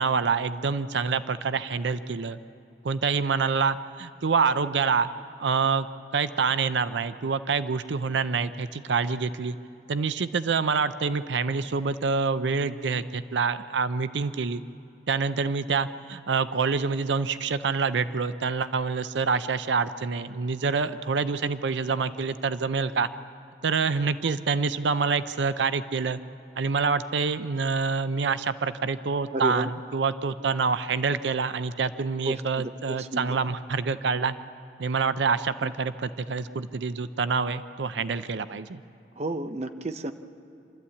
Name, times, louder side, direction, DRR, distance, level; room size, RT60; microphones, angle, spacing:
voice 1, 0.0-2.4 2.8-5.1 5.4-5.9 6.1-9.6 9.9-14.6 15.1-23.1 23.6-26.2 26.6-34.3 34.8-38.8, right 5 dB, 90° right, 13 dB, 0.5 m, -26 dB
voice 2, 29.3-29.7 32.2-33.4 35.6-35.7 39.2-40.1, right 2 dB, 40° right, 8 dB, 0.7 m, -32 dB
27.0 x 13.0 x 8.4 m, 2.7 s
head